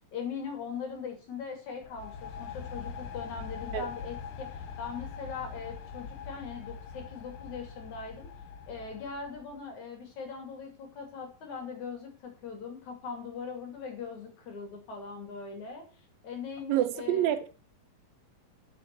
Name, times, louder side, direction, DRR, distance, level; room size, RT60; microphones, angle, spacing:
voice 1, 0.1-8.3 8.7-15.8 16.2-17.4, left 5 dB, 55° left, 3.8 m, -40 dB
sound 1, 1.8-9.6, left 6 dB, 75° left, 1.2 m, -42 dB
voice 2, 16.7-17.5, right 12 dB, 90° right, 2.7 m, -27 dB
7.8 x 7.3 x 6.8 m
omnidirectional pair, 4.0 m